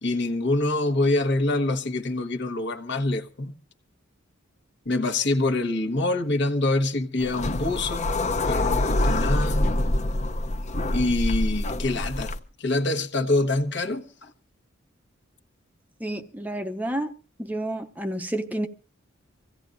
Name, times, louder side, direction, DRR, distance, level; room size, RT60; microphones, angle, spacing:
voice 1, 0.0-3.5 4.8-8.1 8.5-9.7 10.9-12.3 12.6-14.3, left 2 dB, 60° left, 1.2 m, -25 dB
sound 1, 7.2-12.4, left 1 dB, 35° left, 0.7 m, -25 dB
voice 2, 16.0-17.1 17.4-18.7, right 1 dB, 10° right, 0.6 m, -30 dB
25.0 x 16.0 x 2.6 m
head